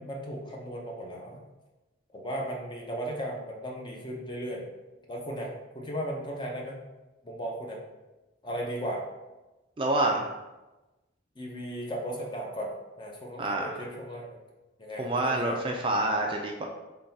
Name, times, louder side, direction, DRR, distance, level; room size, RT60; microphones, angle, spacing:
voice 1, 0.0-1.4 2.1-4.7 5.1-5.5 5.7-6.8 7.2-7.8 8.4-9.0 11.4-12.7 13.0-14.4 14.8-15.6, equal, 25° left, -1 dB, 0.6 m, -36 dB
voice 2, 9.8-10.3 13.4-13.7 15.0-16.6, right 2 dB, 25° right, 1 dB, 0.3 m, -27 dB
3.7 x 2.3 x 4.0 m, 1.1 s
head